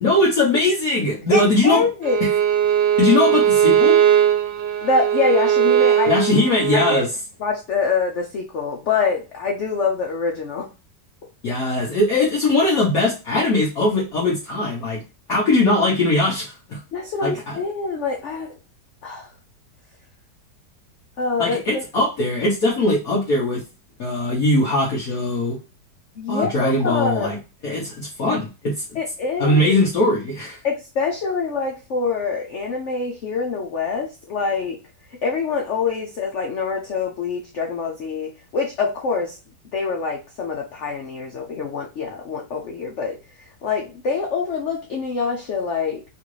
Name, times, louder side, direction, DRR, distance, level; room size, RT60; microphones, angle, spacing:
voice 1, 0.0-1.8 2.2-2.3 3.0-4.0 6.1-7.1 11.4-15.0 15.3-16.8 17.2-17.6 21.4-23.6 24.0-25.6 26.3-27.4 27.6-28.7 29.4-30.6, left 2 dB, 55° left, -5 dB, 1.3 m, -20 dB
voice 2, 1.3-2.2 4.8-6.2 6.7-7.1 7.4-10.7 16.9-18.6 19.0-19.3 21.2-21.8 26.2-27.3 28.9-29.8 30.6-34.8 35.2-39.4 39.7-46.0, left 4 dB, 80° left, 1 dB, 0.6 m, -25 dB
Bowed string instrument, 2.0-7.0, right 10 dB, 90° right, 1.4 m, -18 dB
3.7 x 2.5 x 3.1 m, 0.30 s
omnidirectional pair, 2.0 m